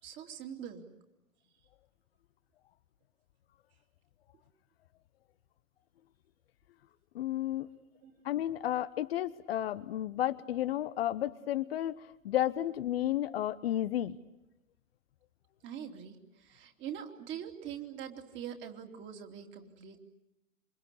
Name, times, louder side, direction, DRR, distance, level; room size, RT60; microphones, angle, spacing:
voice 1, 0.0-0.8 8.0-8.1 15.6-20.0, right 9 dB, 25° right, 4 dB, 3.2 m, -43 dB
voice 2, 7.1-7.7 8.2-14.2, left 12 dB, 45° left, 12 dB, 1.0 m, -32 dB
28.0 x 25.0 x 8.3 m, 0.92 s
figure-of-eight pair, 115°, 41 cm